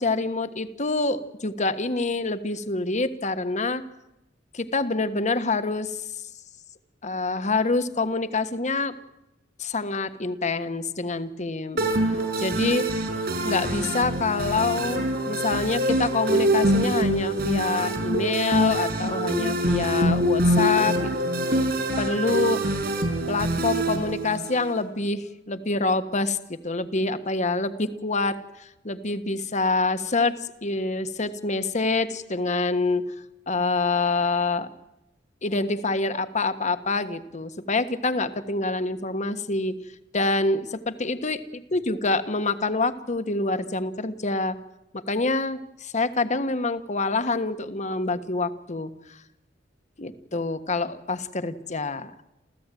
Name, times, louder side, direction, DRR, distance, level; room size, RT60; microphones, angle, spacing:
voice 1, 0.0-3.8 4.5-6.3 7.0-8.9 9.6-11.8 12.4-12.8 13.4-21.3 22.0-22.7 23.3-33.1 33.5-34.7 35.4-39.8 40.1-41.4 41.7-44.6 44.9-49.2 50.0-52.1, left 3 dB, 40° left, 10 dB, 1.4 m, -26 dB
sound 1, 11.8-24.8, right 1 dB, 55° right, 6.3 m, -25 dB
28.5 x 15.0 x 9.2 m, 0.91 s
head